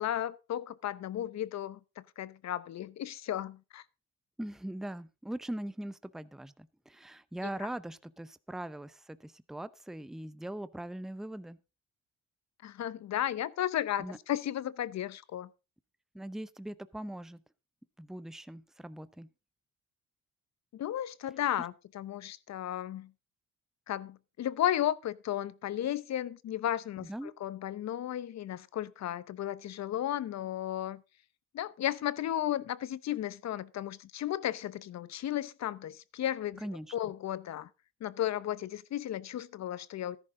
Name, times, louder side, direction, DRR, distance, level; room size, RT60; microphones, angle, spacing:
voice 1, 0.0-3.8 12.6-15.5 20.7-23.1 23.9-31.0 31.5-36.6 36.9-37.7 38.0-40.2, left 12 dB, 60° left, 0.8 m, -34 dB
voice 2, 4.4-11.6 14.0-14.2 16.1-17.4 18.0-19.3 27.0-27.3 36.6-37.1, right 1 dB, ahead, 0.6 m, -41 dB
13.5 x 11.0 x 3.7 m
cardioid pair, 90°, 30 cm